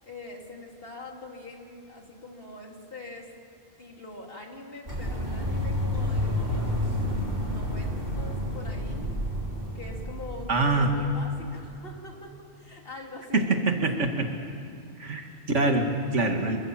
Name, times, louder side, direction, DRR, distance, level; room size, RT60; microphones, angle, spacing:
voice 1, 0.0-3.3 3.8-9.2 9.7-13.7 15.3-15.5, left 2 dB, 50° left, 0 dB, 3.8 m, -43 dB
sound 1, 4.9-11.6, left 1 dB, 50° right, 4.7 m, -30 dB
voice 2, 10.5-11.0 13.3-14.3 15.0-16.6, right 2 dB, 85° right, 4 dB, 2.3 m, -25 dB
27.0 x 24.5 x 7.4 m, 2.7 s
omnidirectional pair, 1.2 m